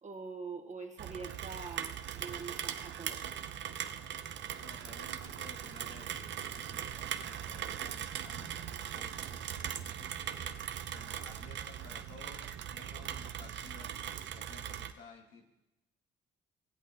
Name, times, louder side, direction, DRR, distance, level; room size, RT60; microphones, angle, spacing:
voice 1, 0.0-3.3, right 4 dB, 35° right, 3 dB, 1.5 m, -44 dB
Rain, 1.0-14.9, right 9 dB, 65° right, 0.7 m, -40 dB
voice 2, 4.6-15.5, left 3 dB, 85° left, 1 dB, 1.8 m, -55 dB
17.0 x 8.3 x 2.9 m, 0.94 s
cardioid pair, 90°, 20 cm